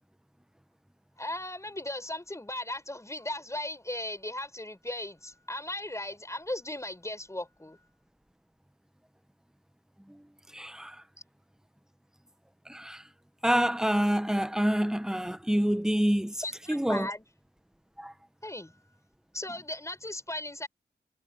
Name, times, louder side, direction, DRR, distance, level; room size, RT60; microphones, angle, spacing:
voice 1, 1.2-7.8 16.4-17.2 18.4-18.7 19.3-20.7, left 1 dB, 15° left, 5.9 m, -37 dB
voice 2, 10.5-10.9 12.7-13.0 13.4-16.3 16.7-17.1 18.0-18.1, equal, 5° right, 1.1 m, -27 dB
cardioid pair, 60°, 17 cm